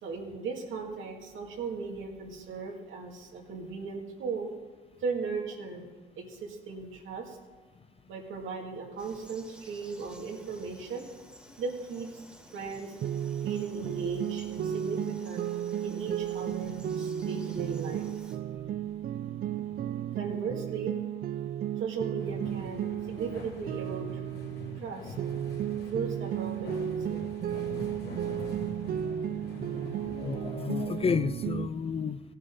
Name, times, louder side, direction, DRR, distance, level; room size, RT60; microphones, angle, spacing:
voice 1, 0.0-4.5 5.0-5.8 6.2-7.4 8.1-11.0 11.6-12.1 12.5-13.0 13.4-15.4 15.8-18.1 18.3-18.4 20.1-20.9 21.8-24.1 24.8-25.1 25.9-27.3, right 5 dB, 80° right, 2.2 m, -37 dB
Frog, 9.0-18.4, equal, 5° right, 2.0 m, -54 dB
sound 1, 13.0-24.9 25.2-31.7, right 10 dB, 50° right, 0.4 m, -34 dB
sound 2, 22.2-31.2, left 3 dB, 55° left, 2.3 m, -45 dB
voice 2, 29.0-32.2, left 6 dB, 30° left, 0.4 m, -33 dB
16.0 x 9.8 x 3.8 m
cardioid pair, 90°, 20 cm